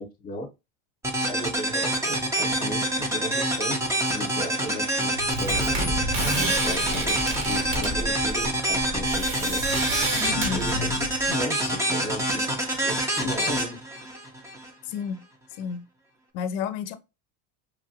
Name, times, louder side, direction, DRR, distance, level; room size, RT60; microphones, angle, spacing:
sound 1, 1.0-14.7, right 1 dB, 10° right, 0.5 m, -26 dB
voice 1, 1.3-2.8 3.1-3.8 4.1-5.1 5.4-5.7 6.4-7.2 7.5-9.6 10.5-12.4 12.8-13.8, left 1 dB, 25° left, 0.9 m, -35 dB
sound 2, 5.2-11.3, right 1 dB, 35° right, 1.0 m, -29 dB
voice 2, 10.2-10.6 14.8-15.2 15.6-15.9 16.3-17.0, left 7 dB, 55° left, 0.5 m, -31 dB
3.1 x 2.5 x 2.7 m
supercardioid pair, 135°, 37 cm